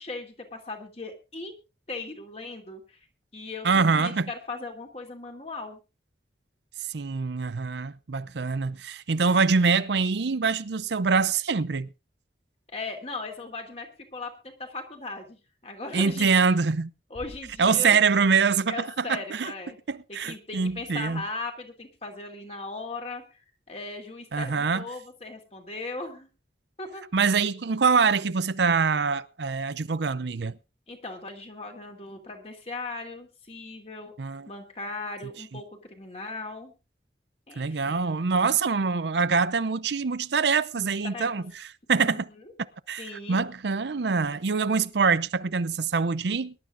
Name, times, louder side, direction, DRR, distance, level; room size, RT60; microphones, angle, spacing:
voice 1, 0.0-1.5 1.9-3.1 3.3-5.8 12.7-16.5 17.1-18.0 18.7-19.8 20.1-23.4 23.7-26.3 26.8-27.0 30.9-34.1 34.5-36.7 37.5-38.0 40.7-41.3 42.0-42.4 43.0-43.4, left 3 dB, 35° left, 3.0 m, -38 dB
voice 2, 3.6-4.3 6.9-11.9 15.9-16.9 17.6-18.7 19.1-19.5 19.9-21.2 24.3-24.8 27.1-30.6 34.2-34.5 37.6-41.4 41.9-42.3 42.9-46.5, right 5 dB, 75° right, 0.6 m, -24 dB
Bass drum, 17.1-18.6, equal, 55° left, 7.8 m, -49 dB
24.0 x 11.5 x 2.6 m
head